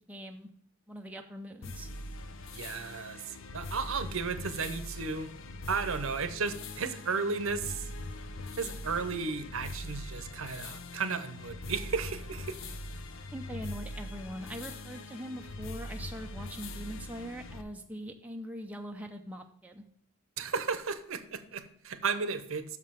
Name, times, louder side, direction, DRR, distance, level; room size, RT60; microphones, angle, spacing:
voice 1, 0.1-0.5 0.9-1.9 13.3-19.8, equal, 5° right, 3 dB, 0.6 m, -42 dB
sound 1, 1.6-17.6, left 1 dB, 65° left, 0.7 m, -42 dB
voice 2, 2.5-5.3 5.7-7.9 8.6-12.6 20.4-22.8, right 5 dB, 70° right, 11 dB, 0.8 m, -34 dB
6.6 x 5.4 x 6.8 m, 0.67 s
head